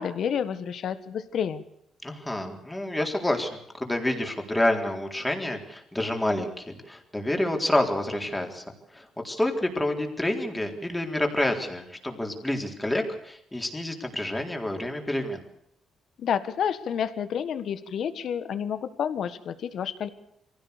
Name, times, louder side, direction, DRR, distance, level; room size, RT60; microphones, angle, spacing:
voice 1, 0.0-1.6 16.2-20.1, left 8 dB, 65° left, 12 dB, 1.6 m, -29 dB
voice 2, 2.0-8.6 8.9-15.4, left 1 dB, 10° left, 3 dB, 4.0 m, -28 dB
23.0 x 16.5 x 6.8 m, 0.76 s
cardioid pair, 90°, 0 cm